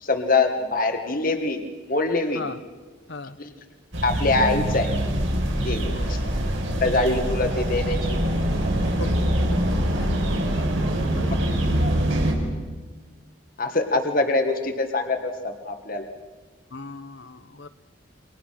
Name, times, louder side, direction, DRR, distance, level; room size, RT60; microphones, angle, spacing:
voice 1, 0.0-1.6 1.9-2.4 3.4-3.5 4.0-4.9 5.6-5.8 6.1-6.2 6.8-8.2 13.6-15.3 15.6-16.1, left 3 dB, 45° left, 6 dB, 1.8 m, -23 dB
sound 1, 3.9-12.3, equal, 70° right, 4.8 m, -24 dB
voice 2, 5.8-6.1 9.0-9.2 9.5-9.6 10.0-10.1 10.5-10.6 11.1-11.8 16.7-17.7, left 3 dB, 60° left, 13 dB, 1.1 m, -37 dB
29.0 x 24.0 x 6.0 m, 1.4 s
head